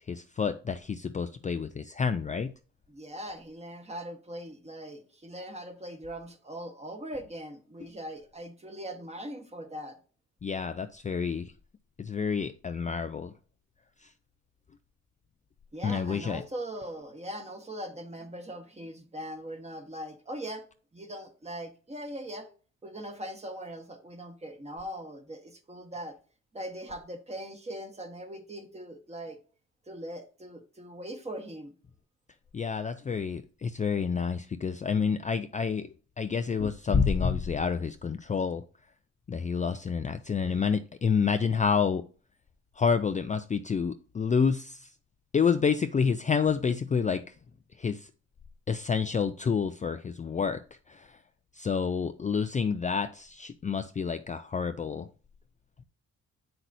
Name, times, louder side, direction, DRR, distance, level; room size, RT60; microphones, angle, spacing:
voice 1, 0.1-2.5 10.4-11.5 12.0-13.3 14.0-14.1 15.8-16.4 32.5-38.6 39.3-42.0 42.8-44.9 45.3-47.3 47.8-48.1 48.7-50.6 50.9-51.2 51.5-55.1, left 6 dB, 25° left, 0.4 m, -28 dB
voice 2, 2.9-10.0 15.7-20.6 20.9-22.5 22.8-26.2 26.5-29.4 29.9-31.7, right 1 dB, 20° right, 1.4 m, -40 dB
7.7 x 6.1 x 2.7 m
cardioid pair, 90°, 30 cm